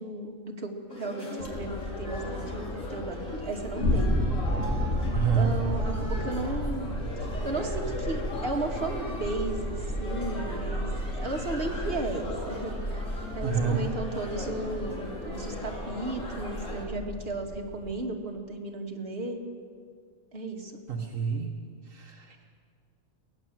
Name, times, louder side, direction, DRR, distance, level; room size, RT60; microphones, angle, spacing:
voice 1, 0.0-4.1 5.0-7.0 7.4-13.1 13.3-19.4 20.3-20.8, right 2 dB, 45° right, 0 dB, 2.5 m, -35 dB
sound 1, 0.9-16.9, left 1 dB, 85° left, 4.1 m, -39 dB
sound 2, 1.4-17.9, equal, 65° left, 3.0 m, -33 dB
voice 2, 5.1-5.5 13.4-13.8 20.9-21.5 21.9-22.4, right 6 dB, 75° right, 1 dB, 1.8 m, -28 dB
23.0 x 18.0 x 7.7 m, 2.1 s
omnidirectional pair, 1.3 m